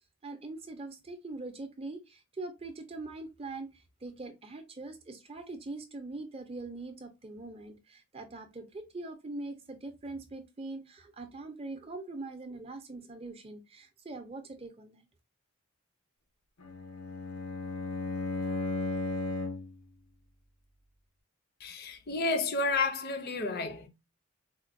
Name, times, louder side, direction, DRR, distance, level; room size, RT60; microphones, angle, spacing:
voice 1, 0.2-15.1, right 2 dB, 25° right, 0.6 m, -42 dB
Bowed string instrument, 16.6-19.8, left 3 dB, 90° left, 0.8 m, -35 dB
voice 2, 21.6-23.9, left 3 dB, 45° left, 0.6 m, -31 dB
4.2 x 2.2 x 2.5 m
head